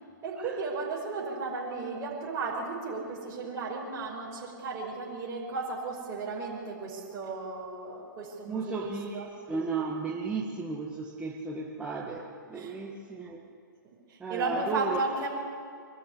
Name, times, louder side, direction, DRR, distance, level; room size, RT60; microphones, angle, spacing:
voice 1, 0.2-9.3 12.5-12.8 14.1-15.3, right 3 dB, 25° right, -4 dB, 5.7 m, -34 dB
voice 2, 8.5-13.5 14.2-15.0, right 4 dB, 10° right, -2 dB, 1.7 m, -34 dB
24.0 x 13.0 x 10.0 m, 2.3 s
hypercardioid pair, 135°, 11 cm